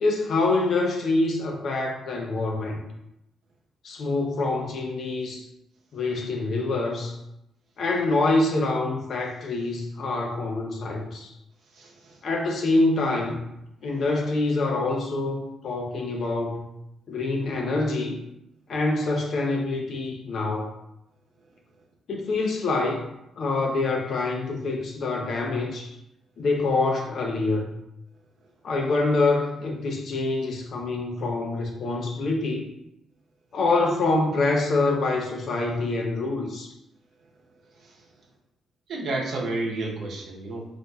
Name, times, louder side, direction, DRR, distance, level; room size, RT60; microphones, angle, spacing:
voice 1, 0.0-2.8 3.8-5.4 5.9-7.2 7.8-11.3 12.2-13.4 13.8-16.6 17.1-18.2 18.7-20.7 22.1-23.0 23.4-26.0 26.4-27.7 28.6-32.7 33.5-36.7, left 2 dB, 55° left, 1 dB, 0.5 m, -25 dB
voice 2, 11.7-12.2 37.8-38.0 38.9-40.7, right 2 dB, 65° right, -2 dB, 0.7 m, -31 dB
4.0 x 2.5 x 2.2 m, 0.85 s
cardioid pair, 125°, 0 cm